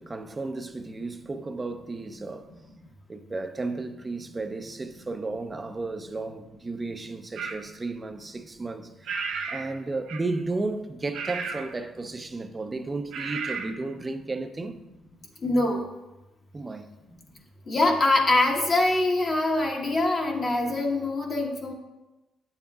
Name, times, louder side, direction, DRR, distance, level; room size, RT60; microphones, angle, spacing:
voice 1, 0.0-2.5 3.1-9.2 9.5-14.7 16.5-16.9, right 3 dB, 25° right, 0.6 m, -33 dB
sound 1, 7.4-7.6 9.0-9.7 10.1-10.4 11.1-11.7 13.1-13.7, right 5 dB, 80° right, 0.7 m, -33 dB
voice 2, 15.4-15.8 17.7-21.7, left 2 dB, 45° left, 1.2 m, -23 dB
8.8 x 7.3 x 2.3 m
cardioid pair, 90°, 0 cm